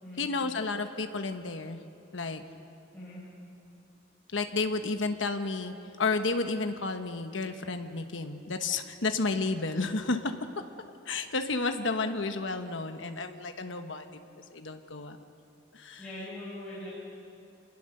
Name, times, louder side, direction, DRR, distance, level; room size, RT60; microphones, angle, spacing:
voice 1, 0.2-1.8 2.1-2.4 4.3-10.3 11.1-14.2 14.5-15.2 15.7-16.0, left 3 dB, 75° left, 7 dB, 1.1 m, -31 dB
voice 2, 16.0-16.9, left 1 dB, 5° left, -9 dB, 5.7 m, -42 dB
27.0 x 19.5 x 6.7 m, 2.6 s
head